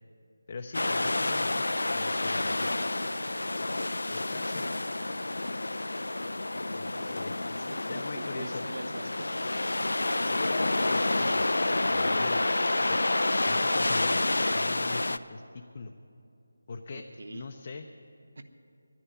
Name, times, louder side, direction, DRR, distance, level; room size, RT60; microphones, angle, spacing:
voice 1, 0.5-3.2 4.1-4.7 6.7-7.3 7.9-8.6 10.2-12.5 12.9-13.0 13.4-15.9 16.7-17.0 17.3-17.9, left 4 dB, 35° left, 4 dB, 0.5 m, -41 dB
sound 1, 0.7-15.2, left 2 dB, 85° left, 0.4 m, -29 dB
voice 2, 7.7-9.5 16.9-17.4 18.4-18.5, right 2 dB, 65° right, 9 dB, 0.9 m, -43 dB
10.5 x 10.0 x 9.0 m, 2.6 s
figure-of-eight pair, 170°, 0 cm